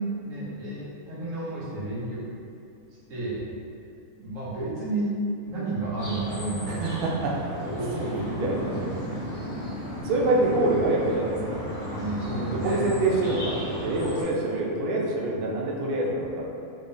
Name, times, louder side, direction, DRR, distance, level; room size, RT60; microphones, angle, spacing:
voice 1, 0.0-2.2 3.1-3.5 4.2-5.1 5.4-7.1 7.6-9.2 11.9-12.9, right 2 dB, 60° right, -8 dB, 1.3 m, -31 dB
sound 1, 6.0-14.2, equal, 50° left, 1.1 m, -36 dB
voice 2, 6.7-7.3 7.9-8.5 10.0-11.4 12.3-16.6, right 2 dB, 90° right, -2 dB, 0.5 m, -26 dB
sound 2, 8.0-13.6, left 1 dB, 80° left, 1.1 m, -39 dB
3.5 x 3.4 x 2.6 m, 2.6 s
omnidirectional pair, 1.6 m